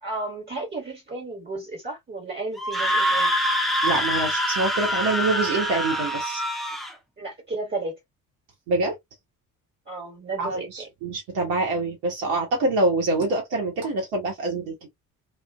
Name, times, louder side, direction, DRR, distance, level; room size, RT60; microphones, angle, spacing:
voice 1, 0.0-3.3 7.2-8.0 9.9-10.9, right 3 dB, 25° right, 1.3 m, -33 dB
Screaming, 2.6-6.9, equal, ahead, 0.6 m, -25 dB
voice 2, 3.8-6.4 8.7-8.9 10.4-14.9, right 2 dB, 70° right, 1.1 m, -25 dB
2.6 x 2.4 x 2.2 m
figure-of-eight pair, 50°, 44 cm